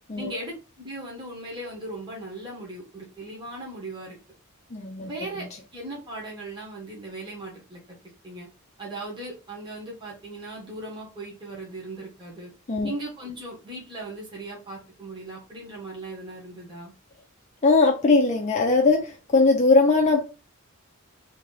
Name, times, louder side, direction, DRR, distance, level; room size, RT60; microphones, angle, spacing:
voice 1, 0.2-4.2 5.0-5.5 5.7-8.0 8.2-8.5 8.8-12.5 12.8-16.9, right 2 dB, 20° right, 1.2 m, -38 dB
voice 2, 4.7-5.1 12.7-12.9 17.6-20.2, left 3 dB, 35° left, 0.5 m, -20 dB
2.9 x 2.9 x 3.8 m
head